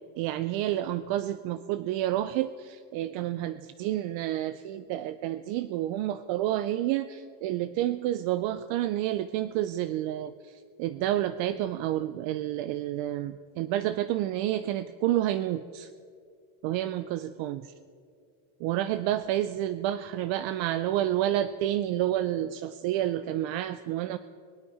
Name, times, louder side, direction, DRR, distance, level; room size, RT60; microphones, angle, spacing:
voice 1, 0.2-15.9 16.6-17.7 18.6-24.2, right 13 dB, 65° right, 12 dB, 0.6 m, -29 dB
21.5 x 9.2 x 4.9 m, 2.2 s
cardioid pair, 165°, 49 cm